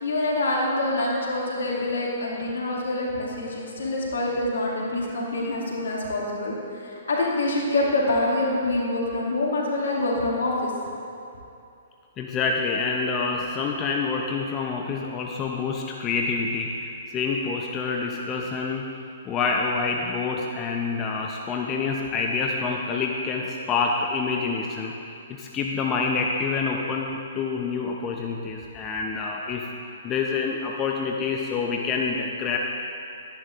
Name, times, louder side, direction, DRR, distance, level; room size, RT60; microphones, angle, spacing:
voice 1, 0.0-10.7, left 2 dB, 75° left, -4 dB, 2.4 m, -26 dB
voice 2, 12.2-18.8 19.3-24.9 25.3-29.7 30.0-32.6, left 4 dB, 25° left, 0 dB, 0.7 m, -27 dB
12.5 x 10.5 x 2.5 m, 2.7 s
hypercardioid pair, 130°, 0 cm